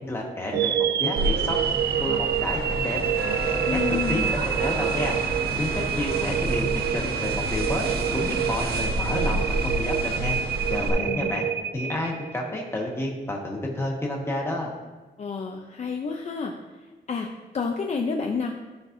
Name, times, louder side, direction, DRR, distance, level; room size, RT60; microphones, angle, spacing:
voice 1, 0.0-1.6 1.9-3.0 3.5-5.1 5.6-6.7 6.9-10.4 10.7-11.5 11.7-14.7, left 1 dB, 15° left, -2 dB, 1.4 m, -30 dB
sound 1, 0.5-12.6, right 9 dB, 80° right, 0.4 m, -28 dB
sound 2, 1.2-10.9, right 1 dB, 65° right, 1.3 m, -29 dB
voice 2, 3.7-4.3 11.0-11.5 15.2-16.5 17.1-17.3 17.5-18.5, left 5 dB, 40° left, 2 dB, 0.5 m, -29 dB
13.5 x 5.8 x 2.6 m, 1.3 s
wide cardioid pair, 170°, 17 cm